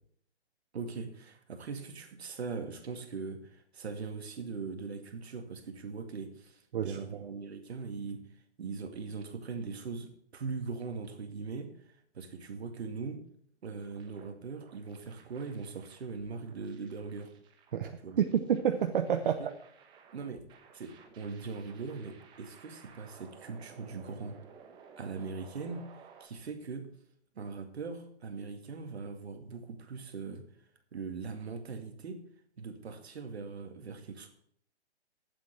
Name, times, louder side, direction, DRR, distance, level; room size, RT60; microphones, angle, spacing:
voice 1, 0.7-8.2 8.6-11.7 12.1-13.2 13.6-17.3 18.0-18.2 19.4-19.5 20.1-20.4 20.7-24.4 25.0-26.9 27.4-30.5 30.9-32.2 32.6-34.3, right 4 dB, 65° right, 6 dB, 2.3 m, -40 dB
sound 1, 13.8-26.2, right 6 dB, 15° right, 1.1 m, -57 dB
voice 2, 17.7-19.5, right 8 dB, 50° right, 6 dB, 0.9 m, -29 dB
9.1 x 7.5 x 7.8 m, 0.68 s
hypercardioid pair, 155°, 34 cm